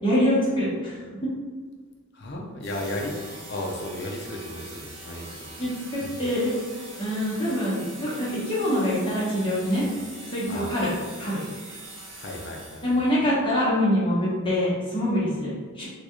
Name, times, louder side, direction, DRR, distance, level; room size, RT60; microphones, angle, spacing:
voice 1, 0.0-1.3 5.6-6.5 7.0-9.8 10.3-10.9 11.2-11.4 12.8-15.9, equal, 25° left, -8 dB, 1.0 m, -25 dB
voice 2, 2.1-5.5 10.5-10.7 12.1-12.8, left 1 dB, 50° left, 0 dB, 0.6 m, -34 dB
sound 1, 2.6-13.2, right 2 dB, 60° right, 1.0 m, -43 dB
3.8 x 2.4 x 3.0 m, 1.5 s
head